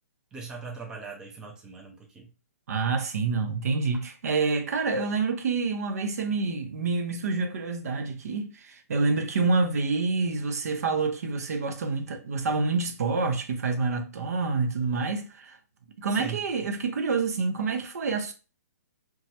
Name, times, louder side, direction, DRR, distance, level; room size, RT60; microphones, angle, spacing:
voice 1, 0.3-2.3 16.1-16.4, right 5 dB, 10° right, 0.4 m, -40 dB
voice 2, 2.7-15.6 16.0-18.3, right 4 dB, 65° right, 0.6 m, -27 dB
3.0 x 2.3 x 2.7 m
hypercardioid pair, 155°, 9 cm